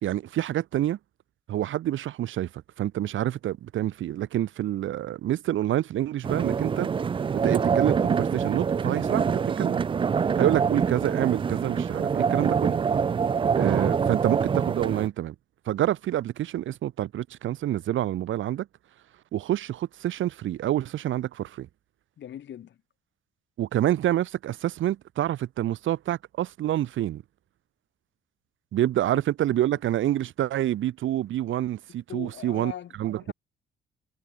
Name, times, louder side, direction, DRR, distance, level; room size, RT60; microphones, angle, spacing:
voice 1, 0.0-1.0 1.5-2.5 2.8-6.9 7.3-9.8 10.4-12.8 13.5-15.3 15.7-18.7 19.3-21.7 23.6-27.2 28.7-32.7 33.0-33.3, right 13 dB, 75° right, 2.9 m, -27 dB
sound 1, 6.2-15.1, right 6 dB, 25° right, 0.4 m, -25 dB
voice 2, 22.2-22.8 29.1-29.2 31.9-33.3, left 10 dB, 65° left, 3.5 m, -41 dB
cardioid pair, 90°, 20 cm